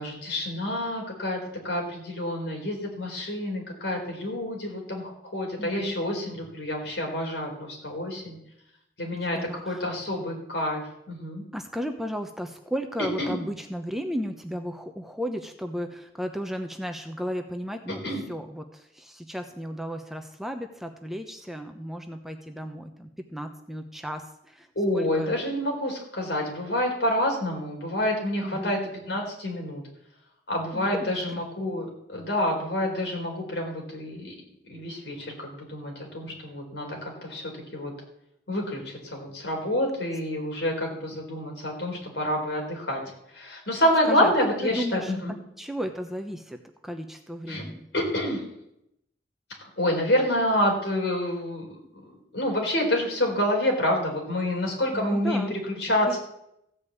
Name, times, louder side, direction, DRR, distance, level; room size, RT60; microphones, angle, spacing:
voice 1, 0.0-1.4 1.6-8.4 9.0-11.4 13.2-13.3 18.0-18.2 24.8-28.8 29.1-29.8 30.5-34.3 34.7-37.4 37.7-37.9 38.5-43.0 43.3-45.3 47.5-47.6 47.9-48.4 49.8-51.7 51.9-52.1 52.3-56.2, left 1 dB, 80° left, 1 dB, 4.3 m, -28 dB
voice 2, 5.6-6.0 9.1-9.9 11.5-18.0 18.3-24.7 24.9-25.3 28.4-28.8 30.7-31.4 44.0-44.3 44.6-45.2 45.6-46.6 46.8-47.9 54.9-55.6 56.1-56.2, equal, ahead, 5 dB, 0.8 m, -34 dB
15.5 x 5.3 x 8.3 m, 0.79 s
head